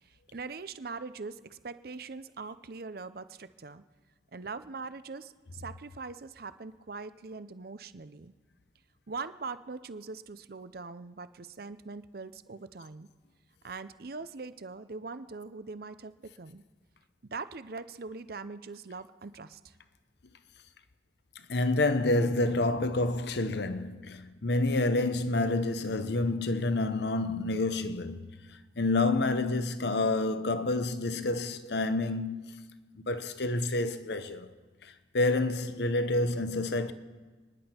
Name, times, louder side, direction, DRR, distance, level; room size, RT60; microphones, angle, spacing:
voice 1, 0.3-3.8 4.3-8.3 9.1-13.1 13.6-16.6 17.3-19.7, right 4 dB, 55° right, 0.6 m, -42 dB
voice 2, 21.5-28.4 28.8-32.7 33.0-34.5 34.8-36.9, left 2 dB, 65° left, 0.8 m, -28 dB
30.0 x 10.5 x 4.4 m
head